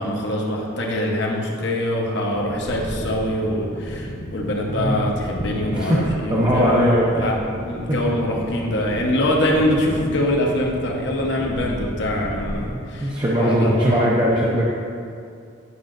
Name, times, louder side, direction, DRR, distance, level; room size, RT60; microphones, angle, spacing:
voice 1, 0.0-14.1, left 1 dB, 60° left, -1 dB, 0.9 m, -24 dB
sound 1, 2.3-12.7, equal, 20° left, 0.9 m, -33 dB
voice 2, 4.7-5.1 5.5-6.0 6.3-7.3 7.9-8.0 13.0-14.7, equal, 25° right, -6 dB, 0.6 m, -20 dB
9.5 x 6.2 x 2.5 m, 2.4 s
head